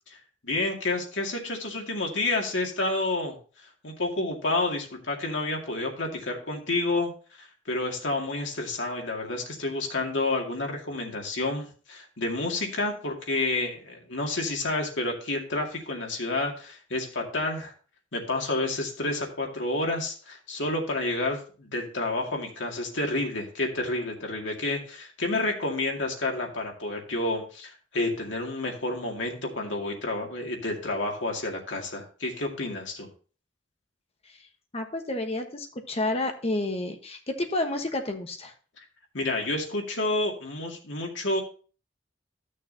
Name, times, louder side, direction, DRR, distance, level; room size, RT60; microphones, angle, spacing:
voice 1, 0.4-3.3 3.8-7.1 7.4-17.7 18.1-33.1 39.1-41.4, left 2 dB, 85° left, 1 dB, 2.2 m, -29 dB
voice 2, 34.7-38.5, left 2 dB, 35° left, 5 dB, 1.1 m, -30 dB
13.5 x 6.5 x 2.7 m, 0.39 s
head